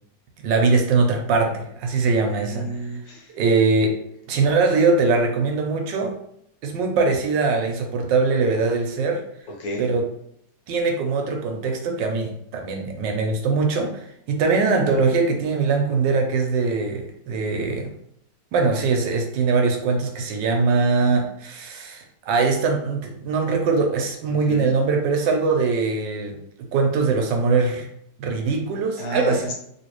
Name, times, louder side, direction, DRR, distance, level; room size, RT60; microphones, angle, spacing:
voice 1, 0.4-2.7 3.3-3.9 4.3-6.1 6.6-9.2 9.8-10.1 10.7-17.9 18.5-26.4 26.7-27.9 28.2-29.5, right 4 dB, 80° right, 4 dB, 1.3 m, -22 dB
voice 2, 2.3-3.3 9.6-9.9 24.3-24.7 29.0-29.5, right 1 dB, 80° left, 1 dB, 1.5 m, -31 dB
3.1 x 3.1 x 3.0 m, 0.71 s
omnidirectional pair, 2.0 m